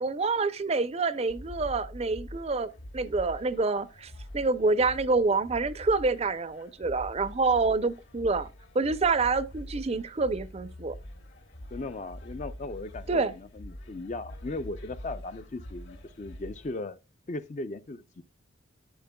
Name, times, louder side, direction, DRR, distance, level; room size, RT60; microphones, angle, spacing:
voice 1, 0.0-8.5 8.7-11.0 13.1-13.3, right 3 dB, 30° right, 0.5 m, -27 dB
sound 1, 1.3-16.7, equal, 70° left, 3.2 m, -45 dB
voice 2, 11.7-17.0 17.3-18.2, left 2 dB, 35° left, 0.5 m, -37 dB
10.5 x 9.9 x 2.3 m
head